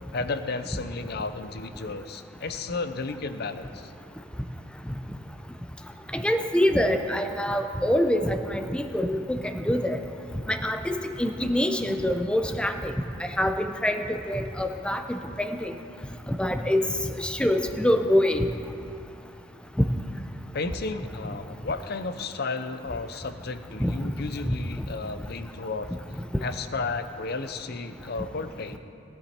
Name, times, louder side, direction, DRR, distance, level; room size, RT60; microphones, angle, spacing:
voice 1, 0.1-3.9 20.5-25.9 26.4-28.8, left 3 dB, 50° left, 10 dB, 0.6 m, -33 dB
voice 2, 6.1-10.0 10.5-12.9 13.4-15.7 16.3-16.8 17.2-18.5 23.8-23.9, left 1 dB, 5° left, 7 dB, 0.6 m, -25 dB
19.0 x 10.0 x 4.4 m, 2.7 s
head